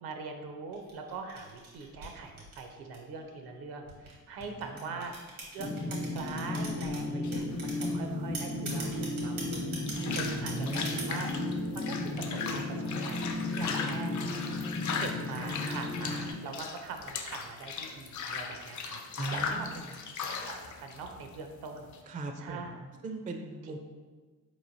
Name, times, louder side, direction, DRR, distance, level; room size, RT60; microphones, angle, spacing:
voice 1, 0.0-5.2 5.5-9.7 10.1-11.3 11.7-14.1 15.0-19.0 19.3-19.8 20.5-22.8, right 4 dB, 70° right, 5 dB, 0.7 m, -43 dB
sound 1, 0.7-3.2 3.9-7.0 7.3-7.9 8.3-11.3, right 3 dB, 85° right, 1.3 m, -42 dB
voice 2, 4.4-5.0 5.8-5.9 10.3-11.0 19.2-20.0 22.1-23.8, right 2 dB, 20° right, 4 dB, 0.4 m, -40 dB
sound 2, 5.6-16.3, left 2 dB, 65° left, 0.9 m, -34 dB
sound 3, 7.2-22.0, left 5 dB, 45° left, 0.5 m, -38 dB
4.3 x 3.1 x 2.7 m, 1.4 s
supercardioid pair, 65°, 40 cm